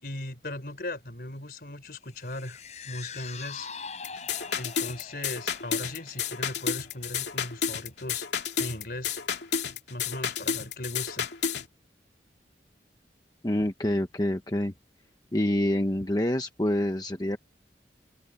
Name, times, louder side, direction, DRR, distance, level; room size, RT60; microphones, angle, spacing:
voice 1, 0.0-3.7 4.5-9.2 9.9-11.3, left 1 dB, 55° left, 4.7 m, -38 dB
sound 1, 2.1-8.5 8.9-9.0, left 5 dB, 40° left, 6.4 m, -44 dB
sound 2, 4.0-11.7, left 7 dB, 80° left, 2.5 m, -31 dB
voice 2, 13.4-14.7 15.3-17.4, left 1 dB, 20° left, 1.0 m, -27 dB
head